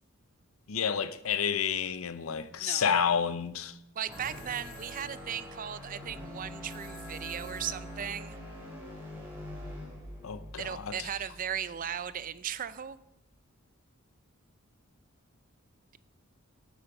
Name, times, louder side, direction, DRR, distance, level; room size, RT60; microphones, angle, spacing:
voice 1, 0.7-3.7 10.2-10.9, left 7 dB, 70° left, 0.6 m, -30 dB
voice 2, 4.0-8.4 10.6-13.0, right 9 dB, 40° right, 0.4 m, -37 dB
sound 1, 4.1-9.1, left 5 dB, 35° left, 3.2 m, -54 dB
sound 2, 4.1-12.2, equal, 10° right, 2.7 m, -44 dB
8.7 x 8.7 x 5.8 m
head